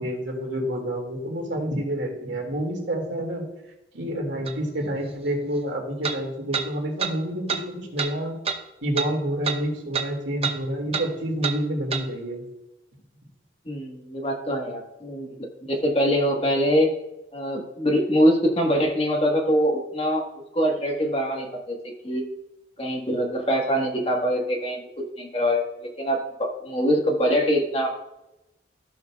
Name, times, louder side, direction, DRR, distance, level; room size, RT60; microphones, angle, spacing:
voice 1, 0.0-3.5 3.9-8.3 8.8-12.4, right 1 dB, 80° right, 0 dB, 2.2 m, -28 dB
sound 1, 4.5-4.6 6.0-6.2 6.5-6.7 7.0-7.1 7.5-7.6 8.0-8.1 8.5-8.6 9.0-9.1 9.4-9.6 9.9-10.1 10.4-10.6 10.9-11.1 11.4-11.6 11.9-12.0, right 6 dB, 30° right, 0.6 m, -27 dB
voice 2, 13.6-16.9 17.3-20.3 20.5-21.8 22.0-22.3 22.8-24.8 25.2-27.9, equal, 30° left, 0 dB, 1.4 m, -23 dB
14.0 x 6.6 x 2.3 m, 0.92 s
head